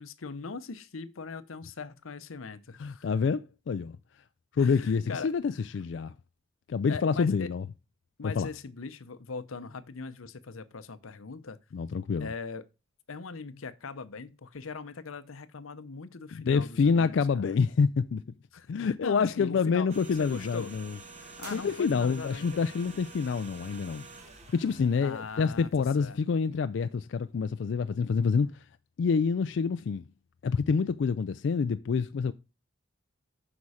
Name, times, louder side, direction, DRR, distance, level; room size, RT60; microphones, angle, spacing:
voice 1, 0.0-3.1 4.6-5.3 6.9-7.5 8.2-11.6 12.2-12.6 13.1-17.6 18.5-19.9 20.2-20.7 21.4-22.6 25.0-25.7 26.0-26.2, left 4 dB, 90° left, 0.7 m, -40 dB
voice 2, 2.8-4.0 4.5-6.1 6.7-7.7 8.2-8.5 11.7-12.3 16.3-18.2 18.7-21.0 21.5-24.1 24.5-28.6 29.0-30.0 30.4-32.3, left 5 dB, 60° left, 0.3 m, -27 dB
sound 1, 19.9-26.2 26.5-26.7, right 3 dB, 35° right, 1.2 m, -49 dB
sound 2, 21.4-22.4, right 4 dB, 50° right, 2.4 m, -49 dB
8.3 x 6.0 x 4.9 m
head